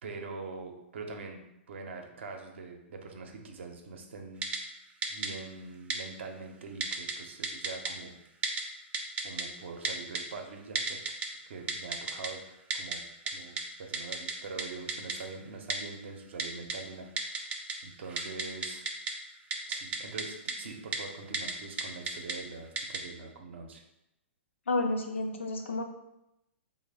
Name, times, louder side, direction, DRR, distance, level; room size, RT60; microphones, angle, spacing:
voice 1, 0.0-1.4 1.7-4.5 5.1-8.2 9.2-11.0 11.5-12.4 12.7-13.0 13.3-18.9 19.7-23.8, right 4 dB, 70° right, 4 dB, 0.6 m, -43 dB
Typing, 4.4-4.6 5.0-5.3 5.9-6.0 6.8-7.1 7.4-7.9 8.4-8.6 8.9-9.4 9.8-10.2 10.8-11.3 11.7-12.3 12.7-13.0 13.3-13.4 13.6-13.7 13.9-14.3 14.6-14.7 14.9-15.2 15.7-15.8 16.4-16.8 17.2-17.7 18.0-19.1 19.5-20.2 20.5-20.6 20.9-21.0 21.3-21.5 21.8-22.3 22.8-23.0, right 4 dB, 20° right, 0.4 m, -32 dB
voice 2, 24.7-25.8, left 2 dB, 80° left, 3 dB, 0.5 m, -30 dB
3.3 x 2.1 x 3.3 m, 0.87 s
hypercardioid pair, 120°, 7 cm